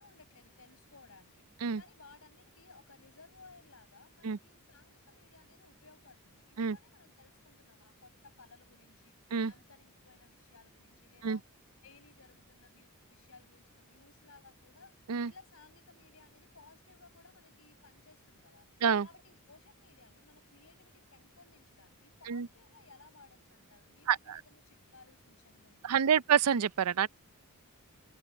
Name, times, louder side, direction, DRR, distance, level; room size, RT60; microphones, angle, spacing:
voice 1, 0.0-1.5 1.8-9.1 9.5-11.4 11.8-14.9 15.3-18.7 19.0-26.2, left 4 dB, 70° left, 6.4 m, -60 dB
voice 2, 25.8-27.1, right 7 dB, 80° right, 0.5 m, -27 dB
head